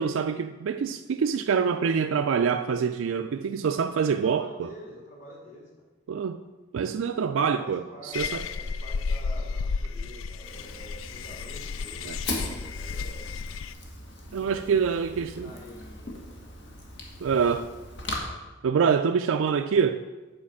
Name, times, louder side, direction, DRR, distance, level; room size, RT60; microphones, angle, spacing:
voice 1, 0.0-4.7 6.1-6.4 6.7-8.4 12.0-12.4 14.3-15.5 17.2-17.7 18.6-20.0, right 6 dB, 90° right, 0.4 m, -25 dB
voice 2, 4.0-5.7 7.4-13.3 14.2-14.8 15.1-16.5, equal, 35° left, 2.4 m, -47 dB
sound 1, 8.1-13.7, left 4 dB, 90° left, 0.4 m, -33 dB
Fire, 10.4-18.2, left 2 dB, 65° left, 1.7 m, -39 dB
8.8 x 5.1 x 7.0 m
head